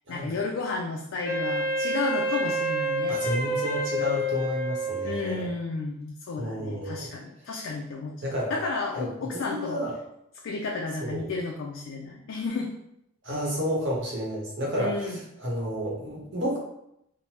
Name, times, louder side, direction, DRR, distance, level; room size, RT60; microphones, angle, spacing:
voice 1, 0.1-3.2 5.0-9.8 10.4-12.7 14.8-15.2, left 3 dB, 75° left, 0 dB, 0.3 m, -32 dB
Wind instrument woodwind instrument, 1.2-5.5, equal, 45° left, 0.7 m, -28 dB
voice 2, 3.1-5.5 6.4-7.1 8.2-8.6 9.0-9.9 11.0-11.3 13.2-16.6, equal, 65° right, -3 dB, 0.9 m, -31 dB
3.2 x 2.1 x 2.9 m, 0.79 s
head